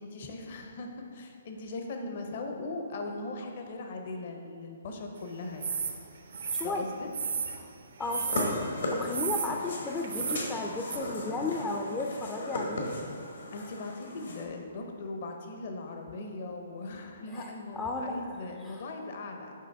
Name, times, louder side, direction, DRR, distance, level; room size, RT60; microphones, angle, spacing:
voice 1, 0.0-5.8 6.6-7.1 13.5-19.5, left 2 dB, 50° left, 3 dB, 0.7 m, -39 dB
sound 1, 5.6-6.0 6.3-7.6 8.1-8.6 9.1-9.5 10.0-10.5 10.9-11.0, right 6 dB, 70° right, 0.6 m, -33 dB
voice 2, 6.5-6.8 7.6-7.7 8.0-12.9 17.3-18.8, left 2 dB, 10° left, 0 dB, 0.4 m, -35 dB
sound 2, 8.0-14.4, left 1 dB, 75° left, 1.4 m, -36 dB
7.5 x 5.1 x 3.5 m, 2.4 s
hypercardioid pair, 145°, 0 cm